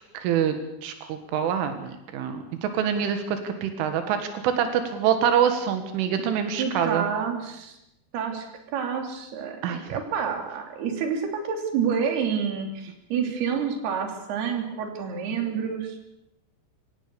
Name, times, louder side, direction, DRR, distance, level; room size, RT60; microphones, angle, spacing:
voice 1, 0.1-0.6 0.8-7.1 9.6-9.8, right 8 dB, 90° right, 7 dB, 4.2 m, -25 dB
voice 2, 6.6-7.8 8.1-8.5 8.7-16.0, right 7 dB, 60° right, 4 dB, 4.8 m, -28 dB
26.5 x 17.5 x 6.9 m, 0.87 s
omnidirectional pair, 5.5 m